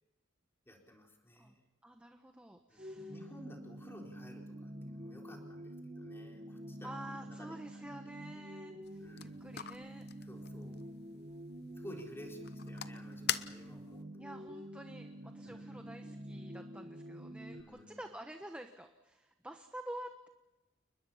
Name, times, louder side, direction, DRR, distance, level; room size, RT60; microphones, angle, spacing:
voice 1, 0.7-1.6 2.7-7.8 9.0-9.5 10.3-10.8 11.7-14.3 15.4-15.9 17.5-18.0, equal, 10° left, 0 dB, 4.2 m, -53 dB
voice 2, 1.8-3.1 6.8-10.1 14.2-20.3, right 1 dB, 5° right, 5 dB, 1.1 m, -49 dB
sound 1, 2.8-17.6, equal, 35° right, 1.9 m, -47 dB
sound 2, 8.8-14.0, left 10 dB, 55° left, 0.8 m, -43 dB
29.5 x 21.0 x 5.7 m, 1.0 s
head